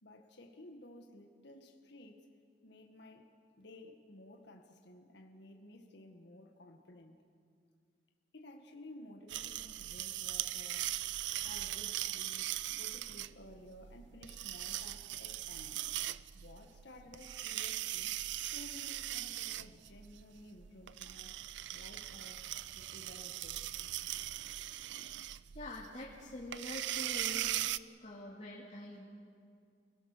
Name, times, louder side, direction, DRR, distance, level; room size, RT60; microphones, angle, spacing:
voice 1, 0.0-2.3 2.6-3.3 3.6-7.2 8.3-10.9 11.4-15.9 16.3-18.1 18.5-21.4 21.7-22.4 22.7-23.6, left 1 dB, 65° left, 3 dB, 1.8 m, -54 dB
sound 1, 9.3-27.8, right 14 dB, 70° right, 0.5 m, -40 dB
voice 2, 25.5-27.5 28.0-29.1, left 1 dB, 35° left, -5 dB, 2.6 m, -45 dB
29.0 x 17.5 x 6.8 m, 2.3 s
head